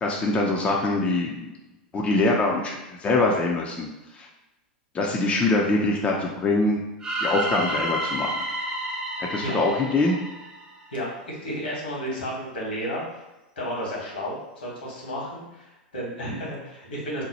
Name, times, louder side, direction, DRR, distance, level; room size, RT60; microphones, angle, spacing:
voice 1, 0.0-1.5 1.9-3.9 4.1-4.3 4.9-6.8 7.2-8.3 9.2-10.2, left 2 dB, 20° left, -1 dB, 0.5 m, -23 dB
sound 1, 7.0-11.1, right 1 dB, 15° right, 0.7 m, -30 dB
voice 2, 10.9-13.0 13.6-17.2, equal, 80° left, -4 dB, 1.3 m, -32 dB
2.8 x 2.2 x 4.1 m, 1.0 s
hypercardioid pair, 95°, 5 cm